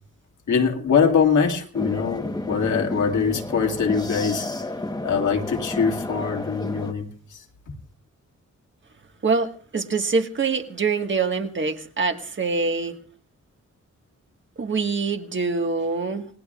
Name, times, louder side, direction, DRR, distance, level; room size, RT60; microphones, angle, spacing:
voice 1, 0.5-4.5 5.0-7.1 7.3-7.4, left 6 dB, 80° left, 1 dB, 2.2 m, -22 dB
sound 1, 1.7-6.9, left 2 dB, 15° left, 1.1 m, -31 dB
voice 2, 9.2-13.0 14.6-16.3, right 4 dB, 40° right, 5 dB, 1.6 m, -24 dB
28.5 x 18.5 x 2.4 m, 0.42 s
wide cardioid pair, 125°, 29 cm